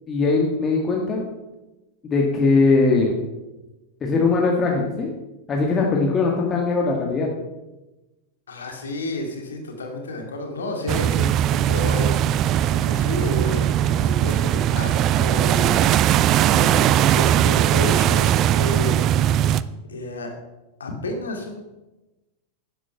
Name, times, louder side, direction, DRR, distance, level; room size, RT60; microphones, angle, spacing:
voice 1, 0.1-1.2 2.0-3.1 4.0-5.1 5.5-7.3, left 3 dB, 25° left, -1 dB, 2.0 m, -20 dB
voice 2, 8.5-12.1 12.7-15.9 16.4-19.0 19.3-19.5 19.9-20.3 20.8-21.6, left 1 dB, 70° left, 3 dB, 2.4 m, -31 dB
sound 1, 10.9-19.6, right 11 dB, 35° right, 0.4 m, -19 dB
11.0 x 10.0 x 5.8 m, 1.0 s
figure-of-eight pair, 90°, 0 cm